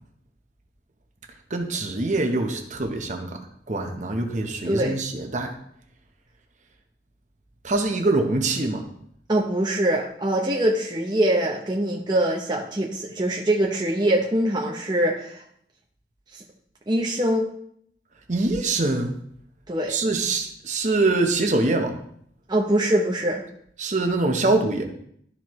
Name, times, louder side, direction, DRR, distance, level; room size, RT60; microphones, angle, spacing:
voice 1, 1.5-3.4 3.7-5.5 7.6-8.9 18.3-19.1 19.9-22.0 23.8-24.9, right 2 dB, 45° right, 4 dB, 1.0 m, -24 dB
voice 2, 4.6-5.0 9.3-15.4 16.3-16.4 16.9-17.5 19.7-20.0 22.5-23.4, right 1 dB, 25° right, -2 dB, 0.7 m, -23 dB
13.0 x 4.5 x 3.1 m, 0.69 s
head